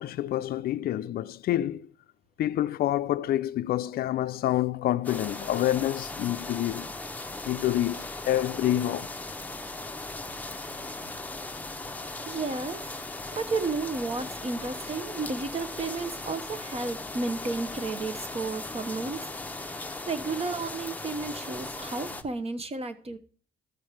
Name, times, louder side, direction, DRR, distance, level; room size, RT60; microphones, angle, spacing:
voice 1, 0.0-1.9 2.4-6.9 7.5-9.1, left 13 dB, 65° left, 0.4 m, -27 dB
sound 1, 5.0-22.2, left 2 dB, 10° left, 0.8 m, -38 dB
voice 2, 12.2-12.8 13.3-19.3 19.6-23.2, right 3 dB, 35° right, 1.0 m, -32 dB
12.5 x 4.4 x 4.9 m
cardioid pair, 80°, 17 cm